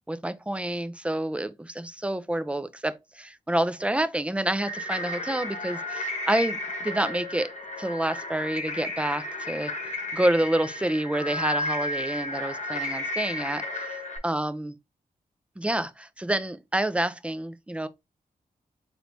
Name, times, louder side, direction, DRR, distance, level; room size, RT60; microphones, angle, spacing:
voice 1, 0.0-13.9 14.2-14.7 15.6-17.9, right 1 dB, 10° right, 0.5 m, -28 dB
sound 1, 4.6-14.2, left 2 dB, 50° left, 1.1 m, -33 dB
3.9 x 3.2 x 3.2 m
cardioid pair, 80°, 15 cm